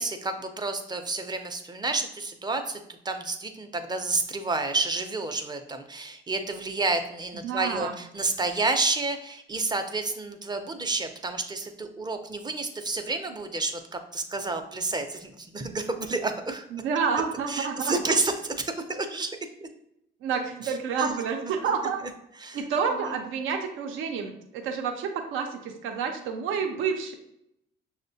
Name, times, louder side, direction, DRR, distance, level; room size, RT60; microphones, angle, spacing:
voice 1, 0.0-16.6 17.5-19.7 20.6-21.1 21.6-21.7 22.4-22.6 23.0-23.1, right 3 dB, 20° right, 7 dB, 0.4 m, -30 dB
voice 2, 7.4-8.0 16.7-18.2 20.2-22.0 22.5-27.1, right 6 dB, 90° right, 4 dB, 0.5 m, -29 dB
6.1 x 2.1 x 2.6 m, 0.78 s
cardioid pair, 90°, 20 cm